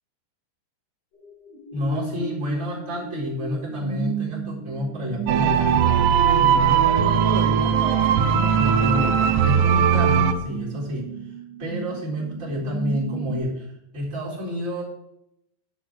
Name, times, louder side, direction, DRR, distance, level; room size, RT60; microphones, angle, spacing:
sound 1, 1.1-13.4, right 5 dB, 65° left, 6.9 m, -35 dB
voice 1, 1.7-11.1 11.6-14.8, equal, 20° right, -5 dB, 3.9 m, -29 dB
sound 2, 5.3-10.3, right 8 dB, 80° right, 2.7 m, -19 dB
10.0 x 5.6 x 6.0 m, 0.80 s
omnidirectional pair, 5.2 m